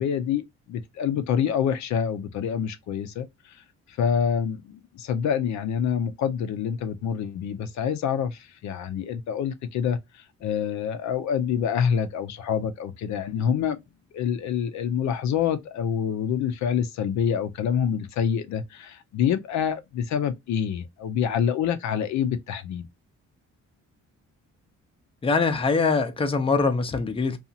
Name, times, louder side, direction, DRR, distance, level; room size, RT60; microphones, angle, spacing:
voice 1, 0.0-3.6 3.9-13.8 14.1-22.8, left 8 dB, 70° left, 0.5 m, -27 dB
voice 2, 25.2-27.4, left 4 dB, 20° left, 0.5 m, -23 dB
2.7 x 2.4 x 2.6 m
cardioid pair, 90°, 30 cm